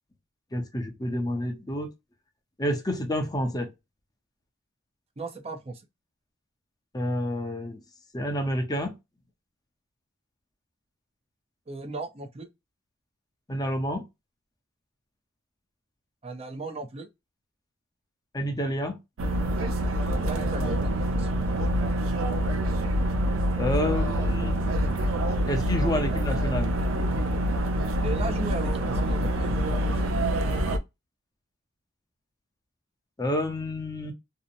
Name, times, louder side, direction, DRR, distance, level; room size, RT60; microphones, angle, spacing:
voice 1, 0.5-1.9 2.6-3.7 6.9-7.8 8.1-8.9 13.5-14.0 18.3-19.0 23.6-24.6 25.5-26.7 33.2-34.1, left 1 dB, 20° left, 0.6 m, -29 dB
voice 2, 5.2-5.9 11.7-12.5 16.2-17.1 20.2-21.5 28.0-29.8, right 3 dB, 30° right, 0.5 m, -36 dB
sound 1, 19.2-30.8, right 1 dB, 85° right, 0.5 m, -26 dB
2.7 x 2.0 x 2.5 m
head